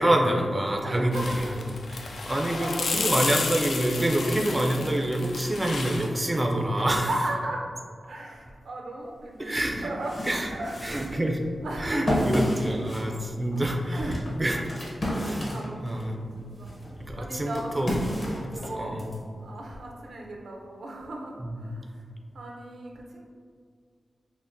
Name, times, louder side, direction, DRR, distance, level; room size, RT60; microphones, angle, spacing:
voice 1, 0.0-1.4 2.3-7.1 9.4-9.9 10.2-10.5 10.8-11.4 11.8-14.6 15.1-16.3 17.0-17.9 18.3-18.4 18.8-19.1 21.4-21.5, right 1 dB, 15° right, 1 dB, 0.3 m, -27 dB
voice 2, 0.8-1.5 1.9-3.2 4.0-4.4 6.7-7.7 8.0-10.2 10.5-11.0 11.6-12.3 12.7-12.8 13.4-14.2 15.5-16.7 17.2-19.0 19.4-22.0 22.3-23.2, right 1 dB, 85° right, 0 dB, 0.5 m, -37 dB
sound 1, 1.1-6.1, left 4 dB, 85° left, 0.3 m, -32 dB
sound 2, 9.2-9.3 9.8-16.1 16.6-19.2, equal, 40° left, 0.7 m, -32 dB
5.6 x 2.0 x 2.5 m, 2.2 s
wide cardioid pair, 120°, 0 cm